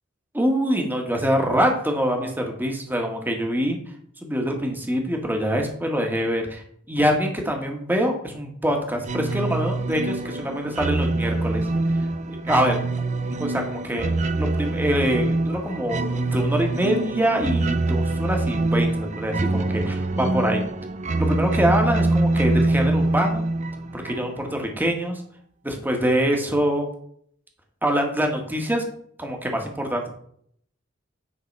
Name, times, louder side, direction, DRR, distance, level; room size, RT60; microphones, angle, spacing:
voice 1, 0.3-3.8 4.2-11.7 12.0-12.8 13.4-20.6 21.2-23.4 23.9-25.2 25.6-26.9 27.8-28.8 29.2-30.1, equal, 10° right, 2 dB, 1.4 m, -24 dB
sound 1, 9.0-24.5, right 2 dB, 35° right, 0.6 m, -24 dB
9.7 x 4.0 x 5.3 m, 0.64 s
head